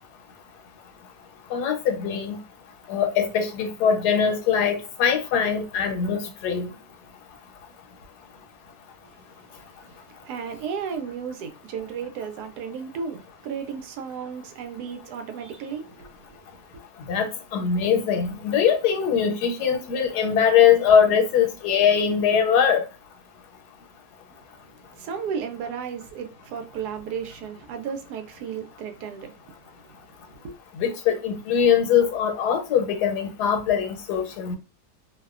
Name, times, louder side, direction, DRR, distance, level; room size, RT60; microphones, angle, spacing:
voice 1, 1.5-2.4 2.9-6.7 17.1-22.8 30.8-34.6, left 7 dB, 80° left, 1.2 m, -22 dB
voice 2, 10.2-16.4 24.9-29.3 29.9-30.0 30.4-30.6, right 6 dB, 80° right, 1.1 m, -34 dB
2.8 x 2.1 x 2.3 m
omnidirectional pair, 1.7 m